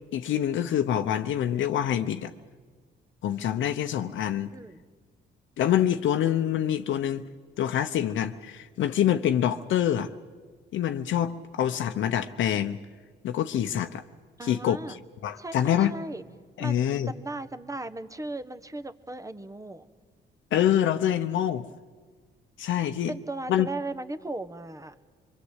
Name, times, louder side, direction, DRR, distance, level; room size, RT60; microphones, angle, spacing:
voice 1, 0.1-2.3 3.2-4.5 5.6-7.2 7.6-10.1 10.7-12.8 13.2-14.0 14.4-15.0 15.2-15.9 16.6-17.1 20.5-21.7 22.6-23.1 23.5-23.7, left 10 dB, 75° left, 7 dB, 0.9 m, -26 dB
voice 2, 4.5-4.8 14.4-15.0 15.4-16.2 16.6-19.9 23.1-24.9, right 2 dB, 15° right, 12 dB, 1.3 m, -37 dB
24.0 x 23.5 x 8.2 m, 1.5 s
cardioid pair, 90°, 20 cm